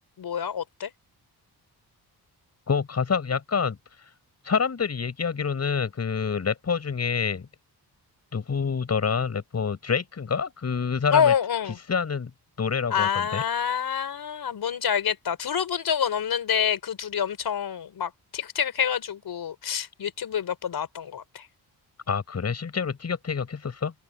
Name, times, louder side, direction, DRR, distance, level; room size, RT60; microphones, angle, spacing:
voice 1, 0.2-0.9 11.1-11.8 12.9-21.5, left 8 dB, 65° left, 5.4 m, -27 dB
voice 2, 2.7-4.1 4.4-7.5 8.3-11.3 11.9-12.3 12.6-13.4 22.1-23.9, left 6 dB, 40° left, 6.8 m, -27 dB
open air
wide cardioid pair, 150°, 40 cm